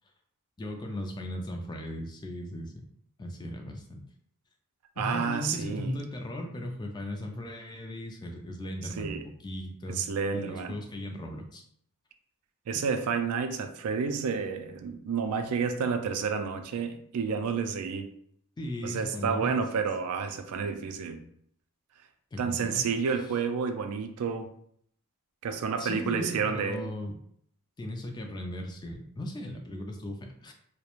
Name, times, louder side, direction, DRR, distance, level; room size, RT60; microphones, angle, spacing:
voice 1, 0.6-2.8 3.2-4.0 5.0-10.0 10.3-11.6 18.6-19.5 22.3-22.8 25.8-27.2 27.8-30.5, left 1 dB, 20° left, 3 dB, 0.3 m, -37 dB
voice 2, 5.0-6.0 9.0-9.2 9.9-10.7 12.7-18.1 18.8-21.2 22.4-24.5 25.4-26.9, right 5 dB, 80° right, 7 dB, 0.4 m, -30 dB
2.3 x 2.1 x 2.9 m, 0.66 s
head